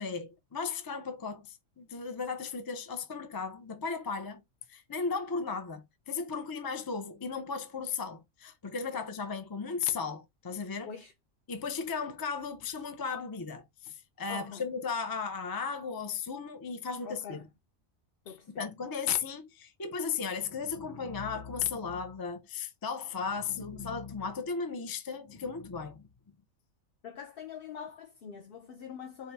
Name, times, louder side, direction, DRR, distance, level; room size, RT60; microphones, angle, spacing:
voice 1, 0.0-4.4 4.7-10.9 11.5-17.4 18.6-26.1, left 5 dB, 35° left, 0.3 m, -35 dB
voice 2, 14.3-14.6 17.0-17.4 18.3-18.7 23.6-24.0 27.0-29.3, left 7 dB, 55° left, 0.7 m, -44 dB
4.5 x 2.6 x 3.4 m
omnidirectional pair, 1.4 m